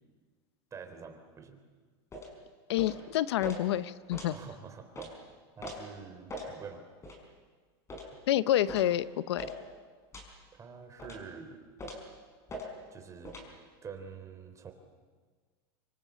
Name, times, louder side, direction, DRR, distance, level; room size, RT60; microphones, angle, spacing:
voice 1, 0.7-1.6 4.3-5.1 5.6-6.8 10.5-11.6 12.9-13.4 13.8-14.7, right 6 dB, 25° right, 6 dB, 3.7 m, -46 dB
sound 1, 2.1-2.3 2.8-3.0 3.4-3.6 4.1-4.3 5.0-5.1 5.6-5.8 6.3-6.5 7.0-7.2 7.9-8.1 8.7-8.9 9.4-9.6 10.1-10.3 11.0-11.2 11.8-12.1 12.5-12.7 13.2-13.5, equal, 20° left, 5.5 m, -41 dB
voice 2, 2.7-4.3 8.3-9.5, left 12 dB, 85° left, 16 dB, 0.8 m, -28 dB
26.0 x 24.0 x 8.4 m, 1.5 s
supercardioid pair, 130°, 13 cm